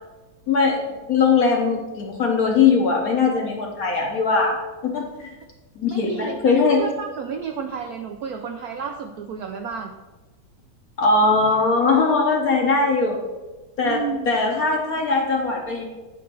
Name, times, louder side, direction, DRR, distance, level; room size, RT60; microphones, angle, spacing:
voice 1, 0.5-0.8 1.1-4.6 4.8-5.3 5.8-6.8 11.0-13.2 13.8-15.8, left 4 dB, 55° left, 1 dB, 1.1 m, -20 dB
voice 2, 5.9-9.9 13.8-14.4, right 6 dB, 80° right, 5 dB, 0.8 m, -31 dB
9.2 x 3.1 x 6.1 m, 1.2 s
omnidirectional pair, 2.2 m